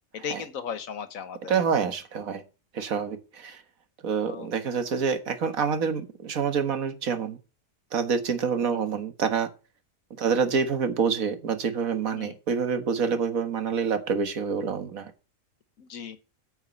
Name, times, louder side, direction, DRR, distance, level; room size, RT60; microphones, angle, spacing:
voice 1, 0.1-1.5 4.3-4.5 8.6-8.9 12.1-12.3 15.8-16.2, left 7 dB, 80° left, 1.5 m, -36 dB
voice 2, 1.5-2.4 2.7-3.6 4.0-7.4 7.9-9.5 10.2-15.1, right 6 dB, 90° right, 1.8 m, -27 dB
9.4 x 5.7 x 7.7 m
omnidirectional pair, 1.4 m